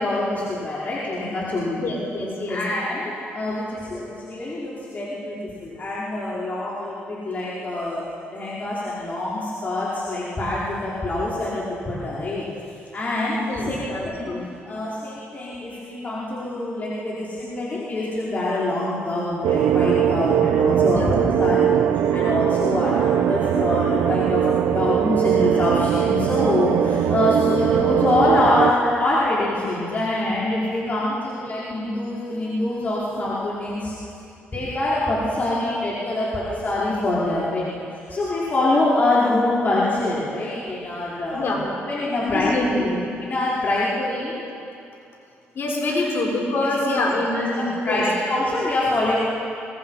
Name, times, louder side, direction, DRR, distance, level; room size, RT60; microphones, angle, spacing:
voice 1, 0.0-1.8 2.5-8.0 8.3-12.5 12.9-13.8 14.2-14.4 14.6-21.8 22.1-33.9 34.5-41.6 41.9-42.5 43.2-44.3 46.6-46.7 47.3-47.4 47.8-49.2, left 2 dB, 40° left, -8 dB, 4.7 m, -25 dB
voice 2, 1.8-2.6 13.5-14.4 20.8-21.7 41.3-41.6 42.2-43.0 45.5-48.0, left 2 dB, 55° left, -3 dB, 6.3 m, -25 dB
sound 1, 19.4-28.7, right 10 dB, 85° right, 0.8 m, -20 dB
23.5 x 20.0 x 5.6 m, 2.5 s
cardioid pair, 80°, 5 cm